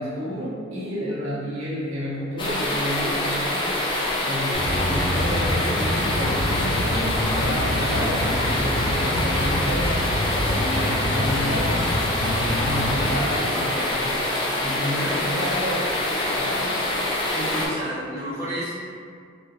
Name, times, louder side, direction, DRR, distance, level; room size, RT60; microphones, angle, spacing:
voice 1, 0.0-3.8 4.2-10.0 10.4-11.8 12.2-14.2 14.6-15.9 16.4-16.7, equal, 90° right, -9 dB, 0.9 m, -30 dB
sound 1, 2.4-17.7, left 1 dB, 25° left, 0.4 m, -25 dB
sound 2, 4.5-13.0, left 1 dB, 55° left, 0.8 m, -26 dB
voice 2, 14.9-15.4 17.3-18.9, equal, 15° right, -12 dB, 0.7 m, -31 dB
2.4 x 2.2 x 2.7 m, 2.2 s
head